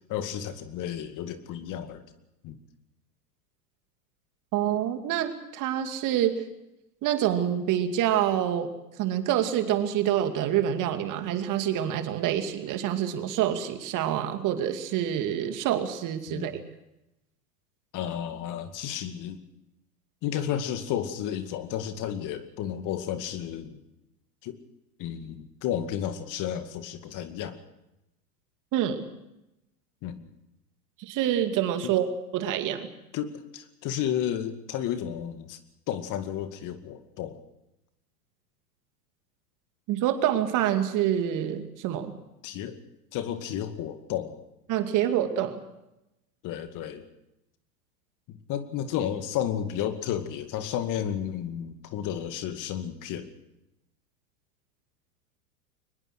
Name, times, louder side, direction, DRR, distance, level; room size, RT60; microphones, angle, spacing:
voice 1, 0.1-2.0 2.4-2.6 16.3-16.6 17.9-19.4 20.2-23.8 24.4-24.6 25.0-27.6 30.0-30.3 31.8-31.9 33.1-35.6 35.9-37.4 42.4-42.8 43.1-44.4 46.4-47.1 48.3-53.3, left 10 dB, 40° left, 9 dB, 2.3 m, -32 dB
voice 2, 4.5-6.4 7.0-8.7 9.0-16.6 28.7-29.0 31.1-32.9 39.9-42.1 44.7-45.6, right 10 dB, 40° right, 7 dB, 2.5 m, -27 dB
23.0 x 20.5 x 6.4 m, 0.91 s
hypercardioid pair, 100°, 47 cm